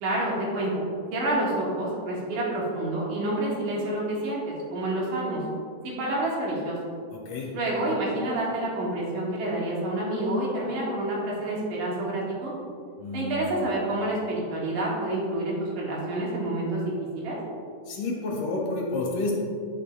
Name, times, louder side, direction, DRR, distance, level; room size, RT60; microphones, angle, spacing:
voice 1, 0.0-5.4 5.8-6.8 7.5-12.5 13.1-17.4, right 1 dB, 80° right, -5 dB, 3.1 m, -28 dB
voice 2, 7.1-7.5 13.0-13.7 17.9-19.3, left 2 dB, 75° left, -3 dB, 2.6 m, -30 dB
11.0 x 6.2 x 2.2 m, 2.3 s
omnidirectional pair, 3.7 m